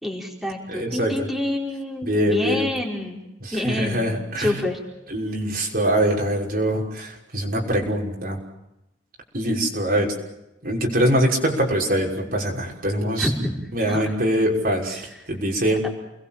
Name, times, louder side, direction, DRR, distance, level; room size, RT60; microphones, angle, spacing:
voice 1, 0.0-3.2 3.5-4.1 4.4-4.8 13.2-13.6 13.9-14.0 14.9-15.0 15.8-15.9, left 1 dB, ahead, -1 dB, 4.8 m, -27 dB
voice 2, 0.7-1.1 2.0-2.8 3.4-4.6 5.1-8.4 9.3-10.1 10.6-13.3 13.7-15.8, right 1 dB, 50° right, -1 dB, 6.1 m, -23 dB
29.5 x 21.5 x 7.6 m, 0.90 s
head